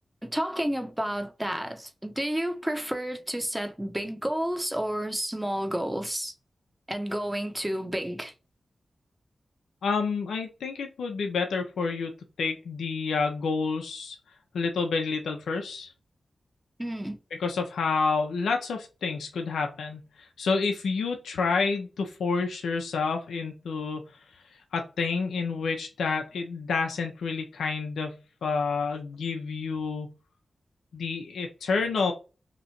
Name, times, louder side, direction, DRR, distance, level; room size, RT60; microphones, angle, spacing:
voice 1, 0.2-6.3 6.9-8.3 16.8-17.2, equal, 10° right, 0.9 m, -31 dB
voice 2, 9.8-12.1 12.4-14.2 14.5-15.9 17.4-24.1 24.7-30.2 30.9-32.1, left 4 dB, 90° left, 0.7 m, -29 dB
3.0 x 2.6 x 4.3 m
cardioid pair, 40°, 0 cm